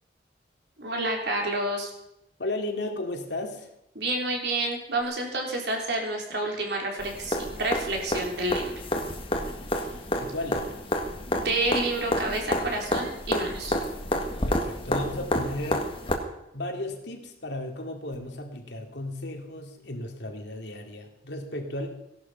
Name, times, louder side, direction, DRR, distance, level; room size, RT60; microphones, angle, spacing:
voice 1, 0.8-1.9 4.0-8.7 11.3-13.7, right 2 dB, 60° right, 1 dB, 3.7 m, -29 dB
voice 2, 2.4-3.7 9.3-10.8 14.5-15.9 16.5-21.9, left 1 dB, 70° left, 3 dB, 2.5 m, -35 dB
sound 1, 7.0-16.1 18.1-18.2, left 1 dB, 30° left, 1.7 m, -30 dB
17.0 x 11.5 x 5.7 m, 0.84 s
head